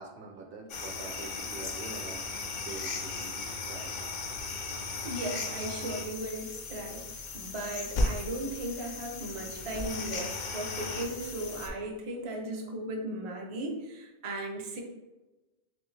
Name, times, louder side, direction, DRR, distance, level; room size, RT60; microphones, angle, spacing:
voice 1, 0.0-4.3, right 3 dB, 65° right, 2 dB, 0.8 m, -45 dB
sound 1, 0.7-11.7, left 3 dB, 55° left, 0.6 m, -36 dB
voice 2, 5.0-7.0 7.3-14.8, right 1 dB, 40° right, 1 dB, 0.5 m, -37 dB
3.3 x 3.3 x 3.1 m, 1.1 s
omnidirectional pair, 1.1 m